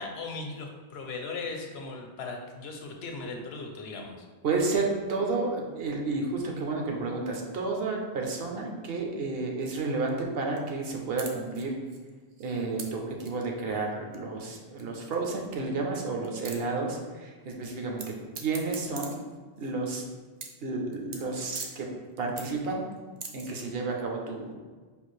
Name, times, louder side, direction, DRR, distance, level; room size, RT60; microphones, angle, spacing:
voice 1, 0.0-4.3, left 3 dB, 70° left, 2 dB, 0.9 m, -38 dB
voice 2, 4.4-11.7 12.4-19.1 19.6-20.0 20.6-21.9 22.2-22.8 23.3-24.5, right 3 dB, 65° right, 1 dB, 0.9 m, -31 dB
sound 1, 9.6-10.1 10.3-10.6 10.9-11.0 11.2-12.8 13.2-13.3 14.1-14.2 14.8-14.9 15.1-15.2 15.4-15.5 16.0-16.1 16.2-16.6 18.0-18.1 18.3-20.1 20.4-20.6 20.9-21.2 21.5-21.7 22.1-22.7 23.0-23.5, right 5 dB, 50° right, 0.5 m, -41 dB
5.3 x 2.4 x 3.1 m, 1.4 s
omnidirectional pair, 1.1 m